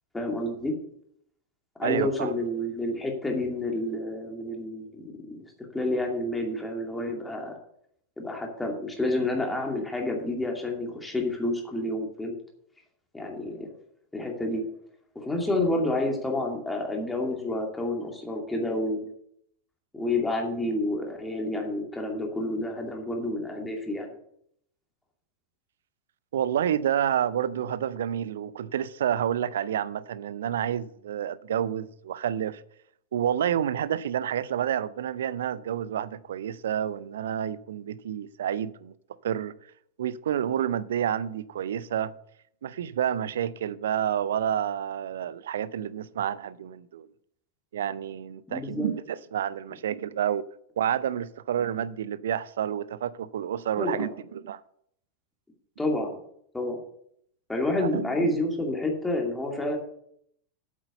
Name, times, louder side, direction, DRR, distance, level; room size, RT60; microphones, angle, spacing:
voice 1, 0.1-0.7 1.8-5.4 5.7-7.6 8.2-12.3 13.1-13.7 14.1-14.6 15.1-19.1 19.9-24.1 48.5-48.9 53.8-54.1 55.8-56.2 56.5-56.8 57.5-59.8, left 1 dB, 10° left, 2.4 m, -29 dB
voice 2, 1.8-2.3 26.3-32.6 33.1-38.9 39.2-39.5 40.0-42.1 42.6-47.1 47.7-50.4 50.8-54.6 57.8-58.3, right 9 dB, 60° right, 0.5 m, -29 dB
8.3 x 7.9 x 6.6 m
figure-of-eight pair, 90°, 0 cm